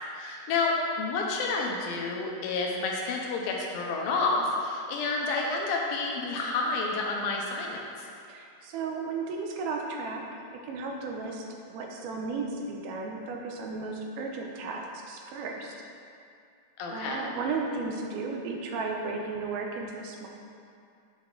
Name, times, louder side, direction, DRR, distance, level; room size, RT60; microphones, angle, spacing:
voice 1, 0.1-8.1 16.8-17.3, left 3 dB, 80° left, -1 dB, 2.4 m, -29 dB
voice 2, 8.3-15.8 16.9-20.3, right 4 dB, 90° right, 1 dB, 2.5 m, -34 dB
8.0 x 5.6 x 3.7 m, 2.4 s
omnidirectional pair, 4.4 m